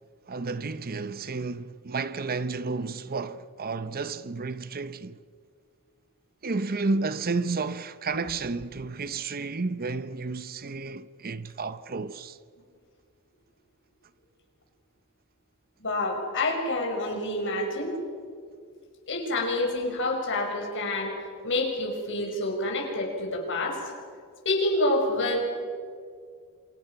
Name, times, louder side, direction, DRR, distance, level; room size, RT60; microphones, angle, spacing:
voice 1, 0.3-5.2 6.4-12.4, right 3 dB, 40° right, 0.8 m, -31 dB
voice 2, 15.8-17.9 19.1-23.9 24.4-25.4, left 2 dB, 55° left, 6.1 m, -28 dB
27.5 x 27.5 x 5.9 m
head